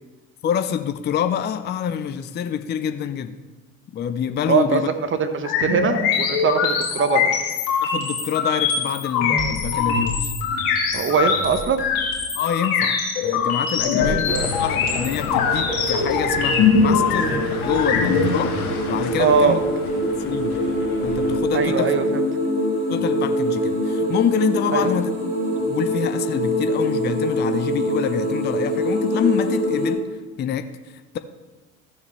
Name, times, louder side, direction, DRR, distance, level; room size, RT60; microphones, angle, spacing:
voice 1, 0.4-3.4 3.9-4.9 7.8-10.3 12.3-18.6 18.9-19.6 20.2-20.6 21.0-21.9 22.9-25.1 25.6-30.0 30.4-31.2, left 8 dB, 25° left, 9 dB, 0.5 m, -26 dB
voice 2, 4.5-4.8 5.1-7.3 10.9-11.8 14.0-14.5 19.2-19.6 21.5-22.0 24.7-24.9, right 6 dB, 30° right, 9 dB, 1.1 m, -21 dB
sound 1, 5.4-18.3, left 6 dB, 55° left, 2.2 m, -22 dB
sound 2, 14.3-21.4, left 4 dB, 85° left, 1.3 m, -32 dB
sound 3, 15.3-29.9, equal, 75° right, 2.8 m, -24 dB
14.5 x 7.1 x 3.2 m, 1.3 s
figure-of-eight pair, 65°, 43 cm